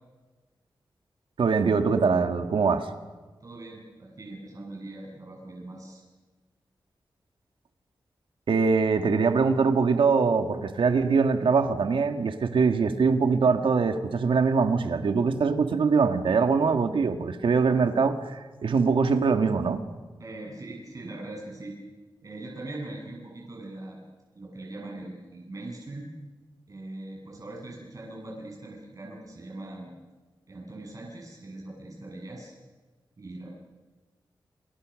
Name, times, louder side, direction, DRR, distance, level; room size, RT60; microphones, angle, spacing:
voice 1, 1.4-2.9 8.5-19.8, right 5 dB, 85° right, 7 dB, 2.0 m, -23 dB
voice 2, 3.4-6.0 20.2-21.8 22.2-24.0 24.3-26.1 26.7-29.9 30.5-32.5 33.2-33.5, right 2 dB, 40° right, -2 dB, 7.8 m, -41 dB
29.5 x 29.0 x 6.5 m, 1.3 s
wide cardioid pair, 155°, 8 cm